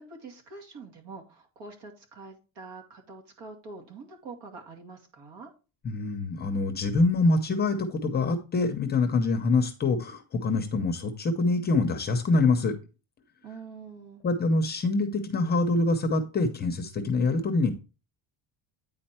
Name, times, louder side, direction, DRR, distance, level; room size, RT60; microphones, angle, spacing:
voice 1, 0.0-5.5 13.4-14.2, right 3 dB, 70° right, 2 dB, 2.4 m, -45 dB
voice 2, 5.8-12.7 14.2-17.7, left 3 dB, 20° left, 6 dB, 0.6 m, -25 dB
9.3 x 4.4 x 4.3 m, 0.32 s
cardioid pair, 180°, 44 cm